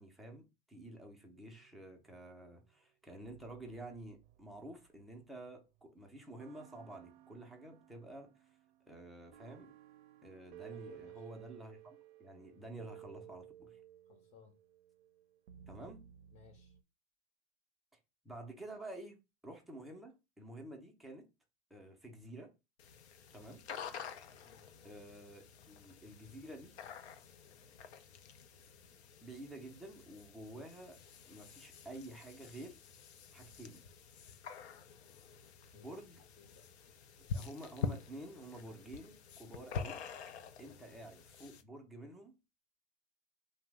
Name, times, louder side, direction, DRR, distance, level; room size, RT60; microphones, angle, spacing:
voice 1, 0.0-8.3 8.9-9.7 10.2-13.8 15.7-16.0 18.2-21.3 21.7-22.5 23.3-23.6 24.8-26.7 29.2-31.0 31.3-32.8 33.3-33.8 35.7-36.2 37.2-40.0 40.6-42.4, right 1 dB, ahead, 0.3 m, -50 dB
sound 1, 1.3-2.5 3.2-5.8 6.4-16.8, right 12 dB, 70° right, 0.5 m, -57 dB
voice 2, 10.7-11.2 14.1-14.6 16.3-16.8 24.4-24.7 35.7-36.0 36.4-36.9 40.6-40.8, left 7 dB, 40° left, 0.6 m, -61 dB
sound 2, 22.8-41.6, left 6 dB, 85° left, 0.5 m, -47 dB
2.8 x 2.0 x 3.3 m
hypercardioid pair, 120°, 32 cm